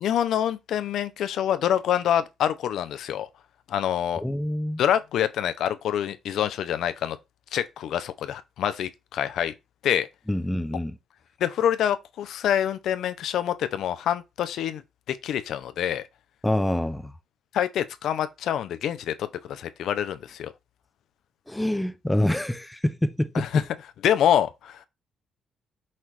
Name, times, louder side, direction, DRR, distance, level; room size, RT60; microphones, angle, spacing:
voice 1, 0.0-3.3 3.7-4.2 4.8-7.2 7.5-9.5 9.8-10.1 11.4-14.8 15.1-16.0 17.5-20.5 23.3-23.6 24.0-24.8, left 10 dB, 75° left, 0.6 m, -26 dB
voice 2, 4.2-4.8 10.3-10.9 16.4-17.1 21.5-23.6, left 1 dB, 10° left, 0.6 m, -26 dB
5.8 x 3.1 x 2.9 m
cardioid pair, 90°, 0 cm